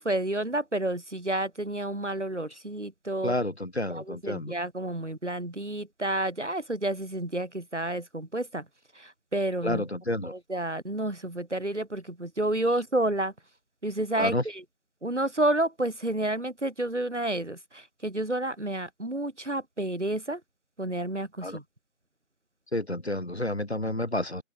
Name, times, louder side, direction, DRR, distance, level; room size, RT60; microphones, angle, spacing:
voice 1, 0.0-3.3 3.9-8.7 8.9-9.9 10.2-13.3 13.8-14.6 15.0-20.4 20.8-21.6, right 1 dB, 60° right, 3.7 m, -30 dB
voice 2, 3.2-4.5 9.6-10.3 14.2-14.4 21.4-21.6 22.7-24.4, left 1 dB, 50° left, 5.7 m, -30 dB
open air
figure-of-eight pair, 170°, 40 cm